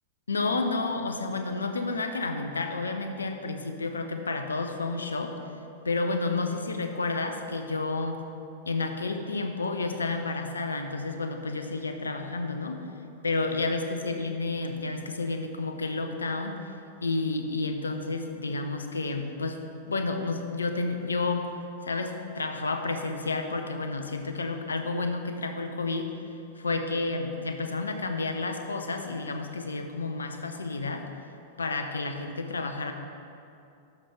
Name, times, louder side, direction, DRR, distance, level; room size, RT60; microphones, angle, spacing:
voice 1, 0.3-5.4 5.8-8.2 8.7-12.9 13.2-16.6 17.0-21.5 21.8-26.1 26.6-31.1 31.6-32.9, left 3 dB, 85° left, 6 dB, 0.7 m, -30 dB
12.5 x 5.8 x 3.3 m, 2.6 s
figure-of-eight pair, 95°, 0 cm